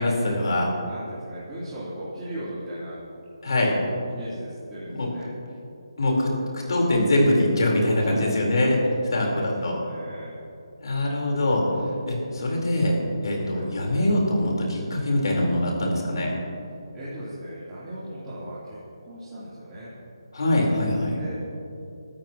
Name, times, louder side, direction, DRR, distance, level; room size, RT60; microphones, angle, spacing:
voice 1, 0.0-0.7 3.4-3.7 4.9-5.1 6.0-8.8 9.1-9.8 10.8-11.6 12.1-13.0 13.2-16.3 20.3-21.2, left 1 dB, 60° left, -2 dB, 4.4 m, -23 dB
voice 2, 0.8-3.0 4.1-5.3 7.9-10.4 13.5-13.7 16.9-19.9 21.2-21.4, right 1 dB, 15° right, -14 dB, 3.6 m, -37 dB
25.5 x 13.0 x 3.1 m, 2.7 s
figure-of-eight pair, 155°, 3 cm